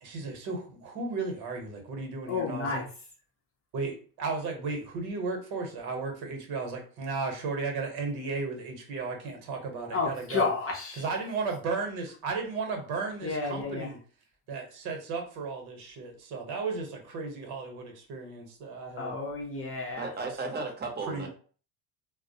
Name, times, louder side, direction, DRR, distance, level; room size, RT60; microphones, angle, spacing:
voice 1, 0.0-2.8 3.7-10.5 10.9-14.0 14.5-19.1 21.1-21.3, right 4 dB, 60° right, 2 dB, 1.0 m, -34 dB
voice 2, 2.3-2.9 9.9-11.0 13.2-13.9 19.0-20.0, left 4 dB, 30° left, 1 dB, 0.6 m, -31 dB
voice 3, 20.0-21.3, right 3 dB, 25° right, 1 dB, 0.7 m, -34 dB
2.2 x 2.1 x 2.7 m, 0.41 s
supercardioid pair, 95°, 44 cm